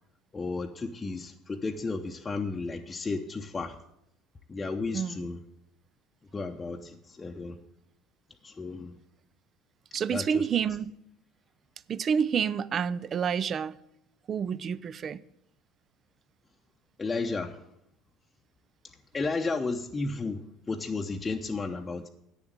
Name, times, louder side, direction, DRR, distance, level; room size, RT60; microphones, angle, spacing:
voice 1, 0.3-3.8 4.5-5.4 6.3-7.6 8.4-8.9 10.1-10.5 17.0-17.6 19.1-22.1, left 3 dB, 25° left, 0.8 m, -33 dB
voice 2, 4.9-5.2 9.9-10.9 11.9-13.7 14.3-15.2, right 7 dB, 45° right, 0.5 m, -28 dB
9.0 x 7.1 x 8.7 m
hypercardioid pair, 75°, 0 cm